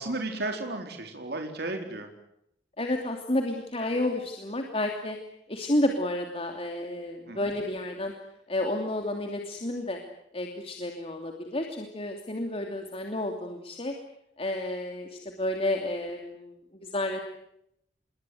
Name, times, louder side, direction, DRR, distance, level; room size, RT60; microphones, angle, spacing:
voice 1, 0.0-2.1 7.3-7.4, right 2 dB, 60° right, 4 dB, 4.1 m, -33 dB
voice 2, 2.8-5.2 5.5-8.1 8.5-10.0 10.3-13.9 14.4-17.2, left 1 dB, 35° left, 3 dB, 2.9 m, -31 dB
28.0 x 22.5 x 7.9 m, 0.77 s
head